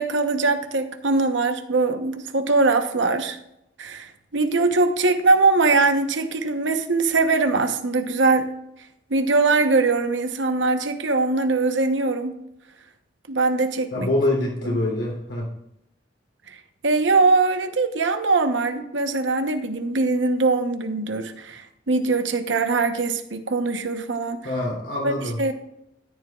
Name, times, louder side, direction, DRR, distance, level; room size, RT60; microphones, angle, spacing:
voice 1, 0.0-3.4 3.8-8.5 9.1-12.4 13.3-14.1 14.7-14.8 16.5-16.6 16.8-24.4 25.0-25.1 25.4-25.5, right 3 dB, 90° right, 7 dB, 1.0 m, -22 dB
voice 2, 13.9-15.5 24.4-25.5, left 1 dB, 80° left, -2 dB, 3.2 m, -25 dB
13.0 x 10.5 x 2.4 m, 0.80 s
head